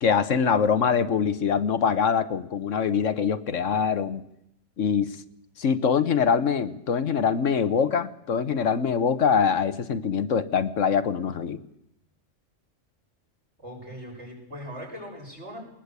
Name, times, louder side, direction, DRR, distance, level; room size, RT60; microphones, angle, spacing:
voice 1, 0.0-4.2 4.8-5.2 5.6-11.6, left 6 dB, 70° left, 12 dB, 1.4 m, -24 dB
voice 2, 13.6-15.6, equal, 60° right, -1 dB, 7.7 m, -40 dB
21.0 x 20.5 x 8.2 m, 0.79 s
omnidirectional pair, 1.3 m